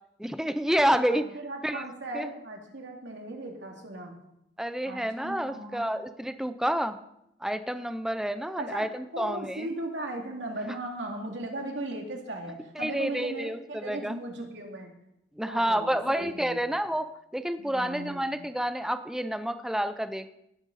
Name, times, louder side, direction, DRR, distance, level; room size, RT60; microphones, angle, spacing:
voice 1, 0.2-1.3 1.6-1.8 2.1-2.3 4.6-7.0 7.4-9.7 12.8-14.2 15.4-20.3, equal, 5° right, 10 dB, 0.5 m, -29 dB
voice 2, 1.1-4.1 4.8-5.9 8.6-14.9 15.4-16.7 17.6-18.4, right 1 dB, 80° right, 1 dB, 2.6 m, -37 dB
17.0 x 10.5 x 4.1 m, 0.80 s
head